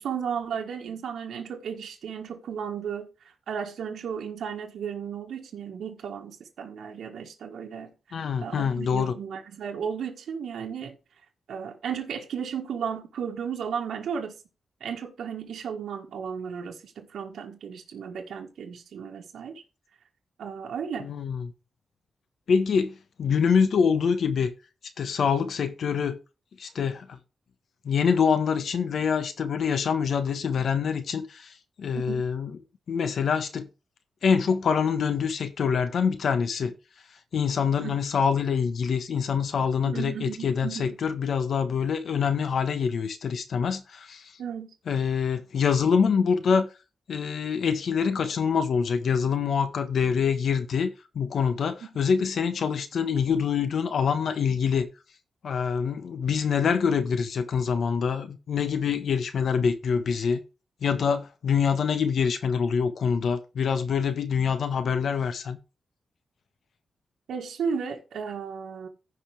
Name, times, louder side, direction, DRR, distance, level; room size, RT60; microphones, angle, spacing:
voice 1, 0.0-10.9 11.5-14.3 14.8-19.6 20.4-21.1 31.9-32.2 37.8-38.0 39.8-41.0 44.4-44.7 67.3-68.9, right 7 dB, 85° right, 1.6 m, -34 dB
voice 2, 8.1-9.2 21.0-21.5 22.5-24.5 25.0-26.2 26.6-27.2 27.8-31.5 31.8-32.5 32.9-33.7 34.2-36.7 37.3-44.2 44.9-46.7 47.1-50.9 51.1-54.9 55.4-60.4 60.8-65.6, left 6 dB, 70° left, 1.3 m, -25 dB
15.0 x 5.5 x 3.4 m
wide cardioid pair, 115°, 0 cm